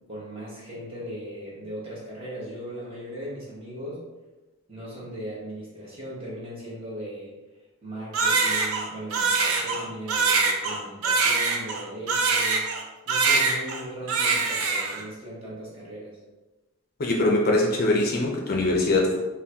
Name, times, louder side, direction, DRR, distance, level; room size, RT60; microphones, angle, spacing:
voice 1, 0.1-4.0 4.7-7.4 7.8-12.7 13.1-16.2, equal, 25° right, -7 dB, 0.9 m, -38 dB
Crying sobbing, 8.1-12.8 13.1-13.8 14.1-15.0, right 4 dB, 80° right, 0.4 m, -23 dB
voice 2, 17.0-19.2, left 2 dB, 45° left, -1 dB, 0.4 m, -22 dB
3.5 x 2.2 x 2.7 m, 1.1 s
head